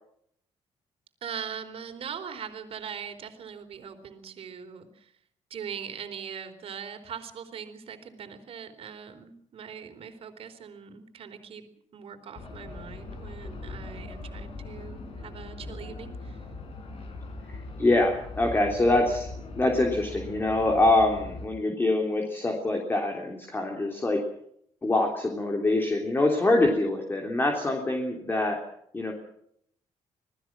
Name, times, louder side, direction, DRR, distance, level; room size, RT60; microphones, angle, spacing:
voice 1, 1.2-5.1 5.5-11.6 11.9-16.4, right 7 dB, 55° right, 7 dB, 3.9 m, -41 dB
sound 1, 12.4-21.5, left 3 dB, 55° left, 6.1 m, -40 dB
voice 2, 17.5-19.3 19.6-24.2 24.8-28.6 28.9-29.1, left 2 dB, 20° left, 2 dB, 3.4 m, -25 dB
27.0 x 19.5 x 6.2 m, 0.69 s
cardioid pair, 150°, 12 cm